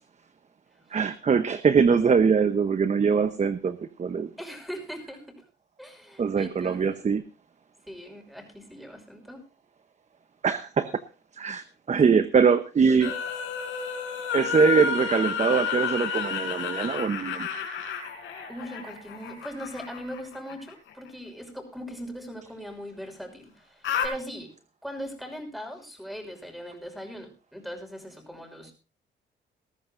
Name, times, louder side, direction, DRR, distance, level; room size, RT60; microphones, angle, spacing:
voice 1, 0.9-4.3 6.2-7.2 10.4-11.0 11.3-13.1 14.3-17.5, right 6 dB, 35° right, 11 dB, 0.9 m, -23 dB
voice 2, 4.4-5.5 5.8-7.0 7.9-9.4 18.5-24.5 24.8-28.7, equal, ahead, 4 dB, 5.7 m, -40 dB
sound 1, 13.0-20.9 23.8-24.1, left 7 dB, 75° left, 4.3 m, -31 dB
20.0 x 13.5 x 2.6 m, 0.32 s
cardioid pair, 90°, 20 cm